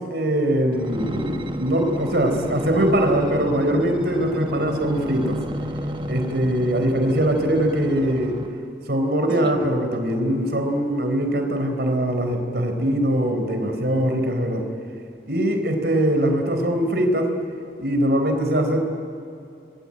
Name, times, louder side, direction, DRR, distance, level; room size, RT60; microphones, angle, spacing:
voice 1, 0.0-5.4 6.1-8.4 8.9-14.7 15.3-17.3 17.8-18.8, right 1 dB, 65° right, 4 dB, 4.3 m, -22 dB
sound 1, 0.7-8.7 9.3-10.6 11.2-11.3, equal, 25° right, 1.2 m, -32 dB
27.0 x 21.5 x 8.8 m, 2.6 s
head